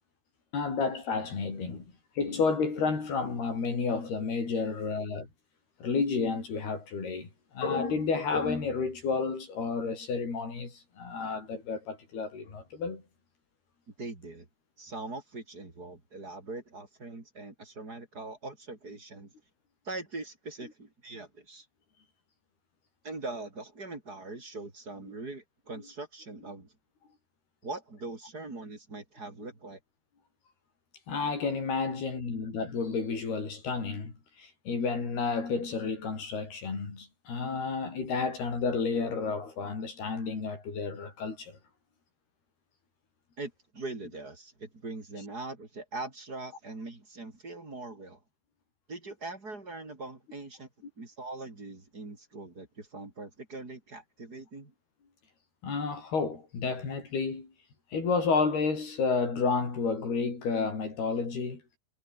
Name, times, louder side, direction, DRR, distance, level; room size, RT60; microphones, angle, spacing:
voice 1, 0.5-1.9 2.2-5.3 5.8-13.0 31.1-41.6 55.6-57.5 57.9-61.6, left 4 dB, 65° left, 8.5 m, -31 dB
voice 2, 14.0-14.5 14.8-19.3 19.8-21.7 23.0-26.7 27.6-29.8 43.4-48.2 48.9-50.7 51.0-54.7, right 2 dB, 20° right, 4.4 m, -41 dB
omnidirectional pair, 4.9 m